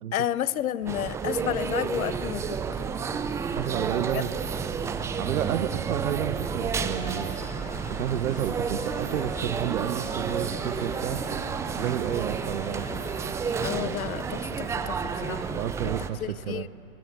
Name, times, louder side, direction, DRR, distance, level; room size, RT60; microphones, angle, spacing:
voice 1, 0.1-2.6 13.6-15.6 16.2-16.7, left 11 dB, 75° left, 0.8 m, -31 dB
sound 1, 0.8-15.1, right 3 dB, 50° right, 4.4 m, -47 dB
sound 2, 0.9-16.1, right 6 dB, 5° right, 0.4 m, -31 dB
voice 2, 3.6-4.7 5.2-7.4 7.9-11.5 11.8-13.0 15.5-16.7, right 11 dB, 70° right, 0.9 m, -31 dB
sound 3, 6.7-13.5, left 6 dB, 20° left, 1.3 m, -45 dB
26.0 x 20.0 x 7.5 m
hypercardioid pair, 115°, 43 cm